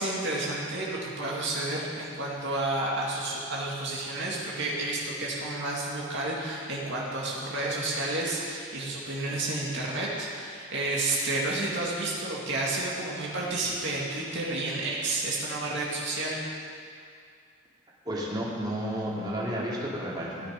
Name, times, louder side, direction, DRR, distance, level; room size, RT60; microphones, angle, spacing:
voice 1, 0.0-16.4, right 2 dB, 60° right, -4 dB, 2.3 m, -31 dB
voice 2, 18.0-20.5, equal, 20° right, -6 dB, 2.6 m, -32 dB
16.5 x 10.0 x 5.3 m, 2.3 s
head